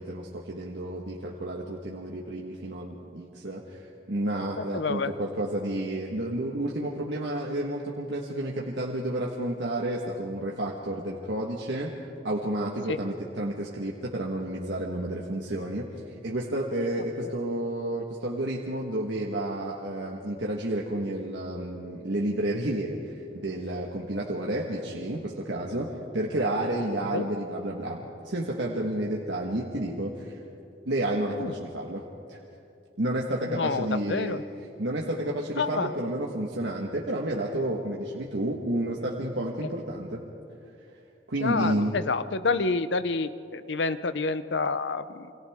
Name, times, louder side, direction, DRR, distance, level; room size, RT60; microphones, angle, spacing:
voice 1, 0.0-11.9 12.2-25.9 26.1-30.4 30.8-32.0 32.3-32.4 33.0-34.4 34.8-40.2 41.3-41.9, right 1 dB, 70° right, -2 dB, 1.5 m, -31 dB
voice 2, 4.6-5.1 12.9-13.0 17.2-17.3 27.1-27.3 31.4-31.5 33.5-34.4 35.6-35.9 41.4-45.3, left 4 dB, 70° left, 13 dB, 0.7 m, -28 dB
29.0 x 24.5 x 3.6 m, 2.7 s
head